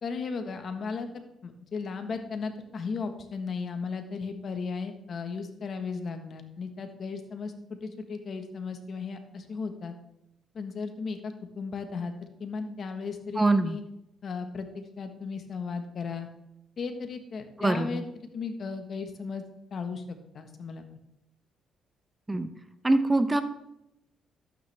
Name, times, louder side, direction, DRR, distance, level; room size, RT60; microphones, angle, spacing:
voice 1, 0.0-9.9 10.5-12.1 12.4-13.8 14.2-16.3 16.8-18.0 18.3-19.4 19.7-20.0 20.3-20.9, left 5 dB, 50° left, 7 dB, 1.4 m, -35 dB
voice 2, 13.4-13.8 17.6-18.0 22.3-22.5 22.8-23.4, right 2 dB, 15° right, 9 dB, 0.9 m, -24 dB
12.0 x 9.0 x 3.5 m, 0.85 s
cardioid pair, 90°, 0 cm